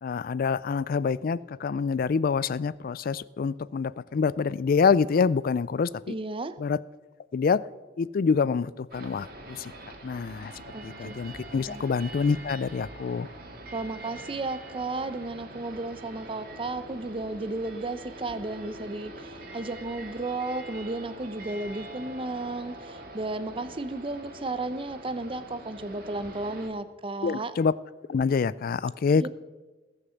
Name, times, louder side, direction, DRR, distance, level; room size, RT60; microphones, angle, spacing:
voice 1, 0.0-5.9 6.6-6.8 7.3-7.6 8.0-9.7 10.0-10.5 10.8-13.3 27.2-27.7 28.1-29.3, left 5 dB, 50° left, 19 dB, 0.4 m, -26 dB
voice 2, 6.1-6.5 10.7-11.2 11.5-11.9 13.7-27.5 29.1-29.3, right 2 dB, 30° right, 13 dB, 0.7 m, -34 dB
sound 1, 8.9-26.7, right 1 dB, 55° right, 2.4 m, -44 dB
19.5 x 6.8 x 7.1 m, 1.2 s
head